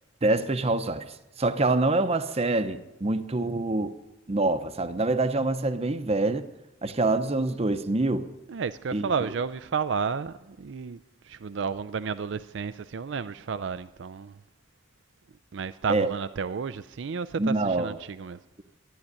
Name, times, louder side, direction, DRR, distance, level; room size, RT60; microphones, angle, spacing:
voice 1, 0.2-3.9 4.3-6.4 6.8-8.3 8.9-9.1 15.9-16.1 17.4-18.0, right 2 dB, 35° right, 0.8 m, -25 dB
voice 2, 8.5-11.0 11.2-14.4 15.5-18.4, right 5 dB, 70° right, 0.4 m, -32 dB
13.5 x 10.5 x 9.8 m
head